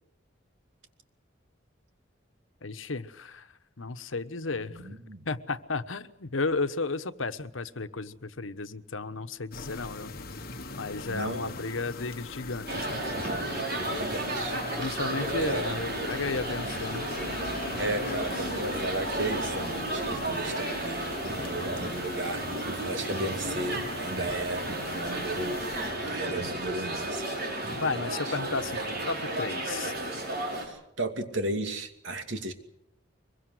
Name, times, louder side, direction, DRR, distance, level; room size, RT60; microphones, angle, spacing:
voice 1, 2.6-3.5 3.8-5.0 5.2-10.1 10.7-13.0 14.8-17.1 27.7-29.9, left 3 dB, 85° left, 10 dB, 1.2 m, -33 dB
voice 2, 4.7-5.3 11.1-11.6 13.7-14.6 15.4-15.7 17.8-22.4 22.8-25.6 26.0-27.4 28.1-28.4 30.6-32.5, right 2 dB, 70° right, 6 dB, 2.6 m, -35 dB
sound 1, 9.5-25.9, left 3 dB, 50° left, 1.6 m, -41 dB
sound 2, 12.7-30.7, right 1 dB, 50° right, 5.9 m, -33 dB
24.0 x 22.5 x 7.9 m, 0.76 s
head